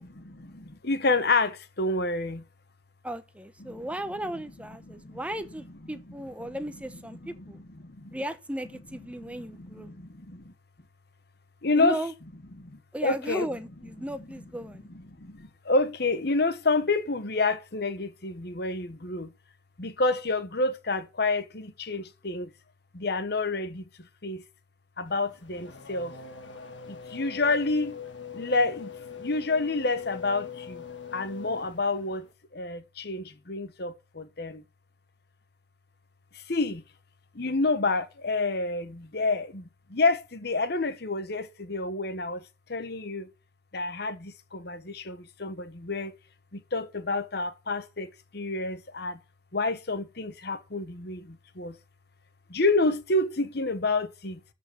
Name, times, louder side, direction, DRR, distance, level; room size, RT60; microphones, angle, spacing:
voice 1, 0.0-2.4 4.9-5.2 7.8-8.2 9.6-10.5 11.6-12.0 12.6-13.4 15.2-19.3 19.8-22.5 22.9-23.8 24.2-24.4 25.0-26.2 26.9-28.0 28.3-28.9 29.2-30.8 31.1-32.3 32.5-34.6 36.5-36.8 37.3-42.4 42.7-43.3 43.7-46.1 46.5-49.2 49.5-51.8 52.5-54.4, left 3 dB, 60° left, 1.2 m, -28 dB
voice 2, 3.0-7.6 8.1-9.9 11.7-12.1 12.9-14.9, right 1 dB, 5° right, 0.8 m, -36 dB
Race car auto racing / Accelerating revving vroom, 25.1-32.3, left 6 dB, 75° left, 1.6 m, -42 dB
13.0 x 5.7 x 6.2 m
head